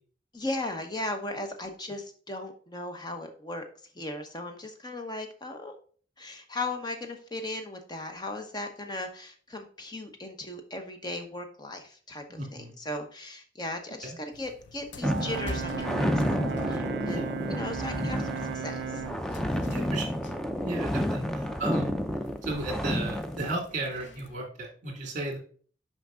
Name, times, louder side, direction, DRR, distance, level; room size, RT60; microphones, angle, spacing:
voice 1, 0.3-3.6 3.9-5.8 6.2-17.2 17.5-19.0, left 2 dB, 25° left, 5 dB, 0.9 m, -37 dB
voice 2, 12.3-12.8 14.0-14.2 17.0-17.2 19.6-20.1 20.6-21.9 22.4-25.4, right 2 dB, 45° right, 1 dB, 2.1 m, -35 dB
sound 1, 14.3-24.4, left 1 dB, 80° left, 0.7 m, -47 dB
sound 2, 15.0-23.5, equal, 5° left, 0.4 m, -30 dB
Brass instrument, 15.0-19.3, right 6 dB, 70° right, 0.4 m, -35 dB
5.9 x 5.3 x 3.7 m, 0.43 s
head